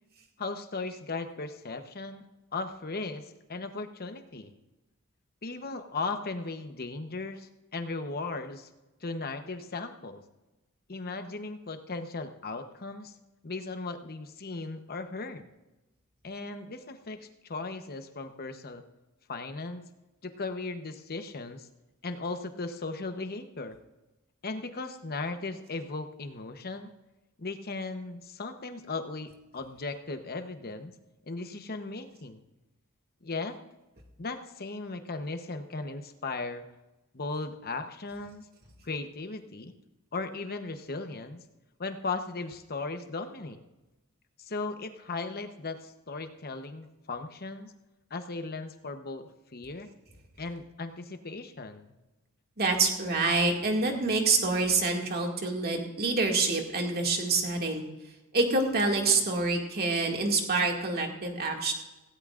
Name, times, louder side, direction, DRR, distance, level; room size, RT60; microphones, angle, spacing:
voice 1, 0.4-2.2 2.5-4.5 5.4-8.7 9.0-10.2 10.9-13.1 13.4-15.5 16.2-18.8 19.3-19.8 20.2-21.7 22.0-23.8 24.4-26.9 27.4-30.9 31.3-32.4 33.2-33.6 34.2-36.6 37.1-38.5 38.8-39.7 40.1-41.4 41.8-43.6 44.4-47.7 48.1-49.2 49.5-49.9 50.4-51.9, left 3 dB, 45° left, 7 dB, 1.0 m, -37 dB
voice 2, 52.6-57.8 58.3-61.7, right 3 dB, 45° right, 1 dB, 2.2 m, -26 dB
17.0 x 16.5 x 2.5 m, 1.0 s
head